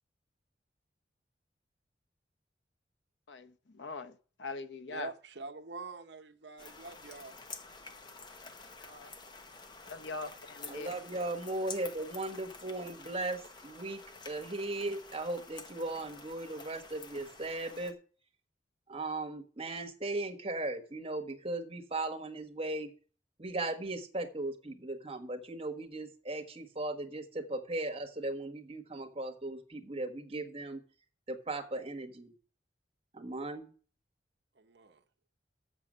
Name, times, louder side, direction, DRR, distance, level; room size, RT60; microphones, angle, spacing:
voice 1, 3.3-5.1 8.8-9.1 9.8-10.9, left 3 dB, 80° left, 0.9 m, -42 dB
voice 2, 4.9-7.4 34.6-35.0, right 4 dB, 70° right, 0.9 m, -45 dB
sound 1, 6.6-17.9, left 4 dB, 25° left, 0.9 m, -49 dB
voice 3, 10.7-14.0 14.2-17.9 18.9-22.9 23.4-30.8 31.3-32.3 33.1-33.7, right 2 dB, 30° right, 1.3 m, -37 dB
7.1 x 6.8 x 7.4 m
head